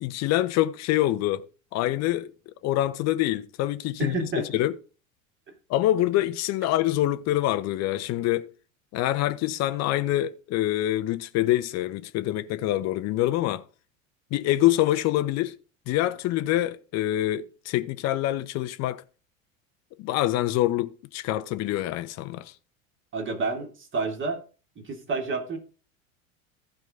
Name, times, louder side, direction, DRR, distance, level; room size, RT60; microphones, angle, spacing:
voice 1, 0.0-1.5 1.7-2.3 2.6-4.1 4.5-4.7 5.7-8.5 8.9-13.6 14.3-15.6 15.9-19.0 20.0-22.5, left 14 dB, 40° left, 0.9 m, -25 dB
voice 2, 4.0-4.5 23.1-24.4 24.8-25.6, right 3 dB, 30° right, 2.9 m, -29 dB
15.0 x 5.1 x 3.7 m
figure-of-eight pair, 75°, 41 cm